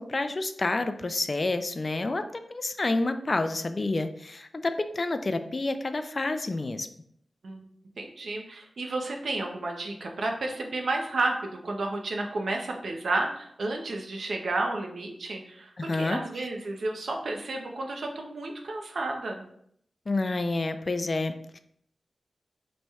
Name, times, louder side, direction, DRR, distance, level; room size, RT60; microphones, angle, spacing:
voice 1, 0.0-6.9 15.8-16.2 20.1-21.6, left 2 dB, 45° left, 9 dB, 0.3 m, -29 dB
voice 2, 8.0-19.4, right 2 dB, 75° right, 2 dB, 0.6 m, -31 dB
3.1 x 2.3 x 4.1 m, 0.69 s
cardioid pair, 55°, 0 cm